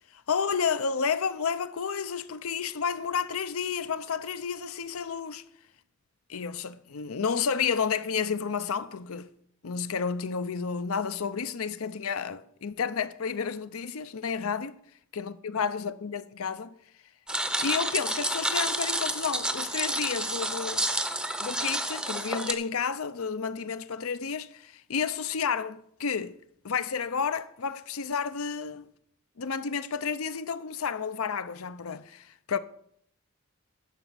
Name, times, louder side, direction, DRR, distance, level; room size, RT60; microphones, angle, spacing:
voice 1, 0.1-5.4 6.3-9.3 9.6-14.7 15.1-16.8 17.6-20.8 21.4-26.4 26.6-28.9 29.4-32.6, left 6 dB, 80° left, 0.6 m, -31 dB
sound 1, 17.3-22.5, right 1 dB, 5° right, 0.6 m, -30 dB
11.0 x 6.0 x 6.9 m
head